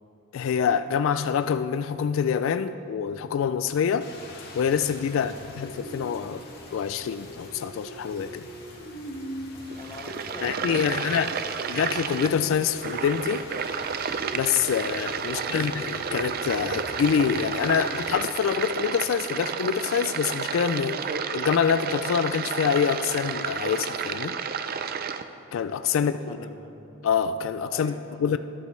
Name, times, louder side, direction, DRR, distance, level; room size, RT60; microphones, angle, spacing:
voice 1, 0.3-4.1 4.5-6.4 6.7-8.5 10.4-11.3 11.7-13.5 14.3-24.4 25.5-26.1 27.0-27.9 28.2-28.4, left 7 dB, 75° left, 12 dB, 0.3 m, -26 dB
Rain, 4.0-18.1, equal, 50° left, 1.9 m, -42 dB
voice 2, 9.5-11.9 15.2-15.6 25.9-26.7 27.7-28.2, left 1 dB, 25° left, 3 dB, 0.9 m, -44 dB
sound 1, 9.6-25.2, right 6 dB, 45° right, 0.4 m, -31 dB
20.0 x 8.3 x 3.2 m, 2.9 s
head